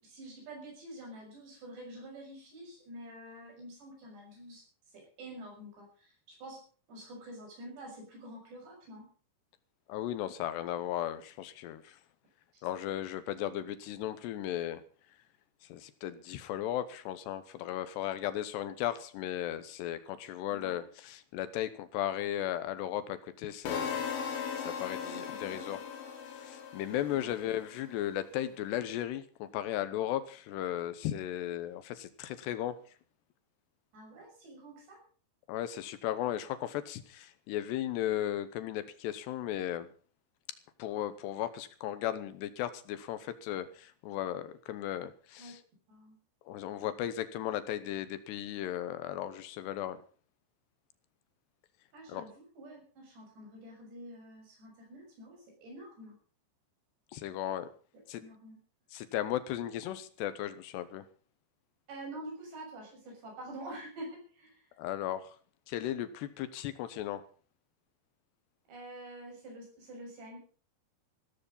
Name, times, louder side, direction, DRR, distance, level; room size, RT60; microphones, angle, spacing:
voice 1, 0.0-4.6 4.9-6.6 6.9-9.1 12.5-12.6 20.5-20.8 25.1-25.8 27.1-27.3 33.9-35.0 45.4-45.5 45.9-46.2 51.9-56.2 58.2-58.6 61.9-64.6 68.7-70.4, right 1 dB, 70° right, 1 dB, 8.7 m, -47 dB
voice 2, 9.9-12.0 12.6-14.8 15.6-24.0 24.6-25.8 26.3-32.8 35.5-39.9 40.8-45.6 46.5-50.0 52.1-52.2 57.1-57.7 58.1-58.2 58.9-61.1 64.8-65.4 65.7-67.2, left 12 dB, 75° left, 13 dB, 2.9 m, -36 dB
sound 1, 23.7-27.7, left 7 dB, 60° left, 3.7 m, -38 dB
15.5 x 14.0 x 5.4 m, 0.42 s
omnidirectional pair, 5.2 m